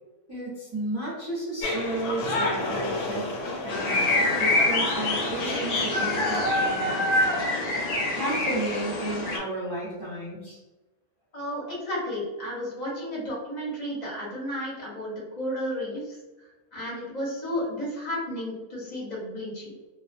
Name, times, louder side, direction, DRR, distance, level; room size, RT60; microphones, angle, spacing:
voice 1, 0.3-3.3 3.6-7.6 8.1-10.6, right 2 dB, 30° right, -9 dB, 0.5 m, -33 dB
sound 1, 1.6-6.8, left 2 dB, 85° left, 1.1 m, -32 dB
sound 2, 3.7-9.4, left 2 dB, 65° left, 0.9 m, -25 dB
voice 2, 11.3-16.2 16.7-19.7, equal, 35° left, -5 dB, 0.8 m, -33 dB
2.4 x 2.2 x 2.5 m, 1.1 s
omnidirectional pair, 1.6 m